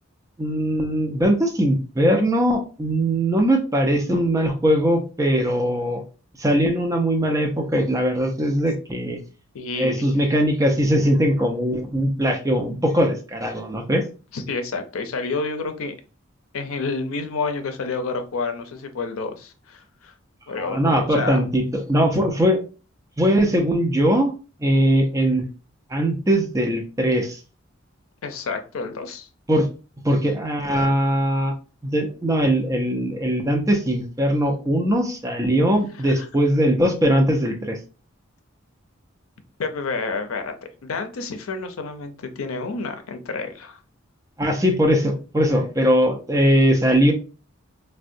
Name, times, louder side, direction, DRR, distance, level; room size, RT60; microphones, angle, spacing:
voice 1, 0.4-6.0 6.4-9.2 9.8-14.0 20.6-22.6 23.2-24.3 24.6-25.4 25.9-27.4 29.5-29.7 30.0-31.5 31.8-37.8 44.4-47.1, equal, 15° right, 0.5 m, -20 dB
voice 2, 9.5-10.2 14.3-15.9 16.5-20.1 20.5-21.4 28.2-29.3 36.0-36.3 39.6-40.5 40.8-43.8, left 4 dB, 85° left, 0.5 m, -29 dB
3.5 x 2.1 x 2.5 m
head